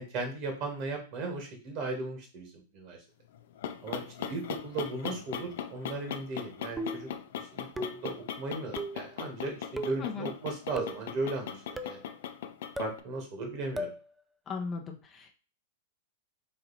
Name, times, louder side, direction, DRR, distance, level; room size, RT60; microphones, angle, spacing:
voice 1, 0.0-3.0 3.8-7.1 7.3-7.7 8.0-12.0 12.8-13.9, right 3 dB, 50° right, 3 dB, 1.8 m, -36 dB
sound 1, 3.3-13.0, left 9 dB, 65° left, 0.5 m, -39 dB
sound 2, 6.8-7.2 7.8-8.2 8.8-9.1 9.8-10.1 10.8-11.1 11.8-12.0 12.8-13.0 13.8-14.0, right 1 dB, 10° right, 0.4 m, -37 dB
voice 2, 10.0-10.3 14.5-15.3, left 5 dB, 25° left, 3 dB, 0.7 m, -37 dB
4.1 x 2.8 x 4.2 m, 0.36 s
hypercardioid pair, 110°, 0 cm